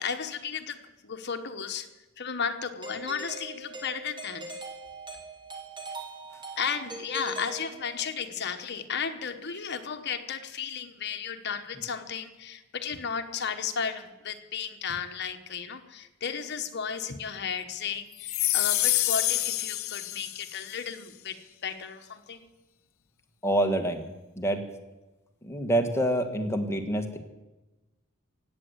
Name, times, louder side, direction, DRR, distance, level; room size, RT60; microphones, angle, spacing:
voice 1, 0.0-1.9 2.2-4.5 6.6-22.4, left 6 dB, 50° left, 7 dB, 1.3 m, -34 dB
Doorbell, 2.8-8.2, right 3 dB, 20° right, 2.7 m, -41 dB
sound 1, 18.2-20.7, left 16 dB, 70° left, 0.6 m, -27 dB
voice 2, 23.4-24.0 24.4-24.6 25.4-27.2, right 1 dB, 15° left, 5 dB, 1.6 m, -26 dB
16.5 x 9.5 x 8.0 m, 1.1 s
head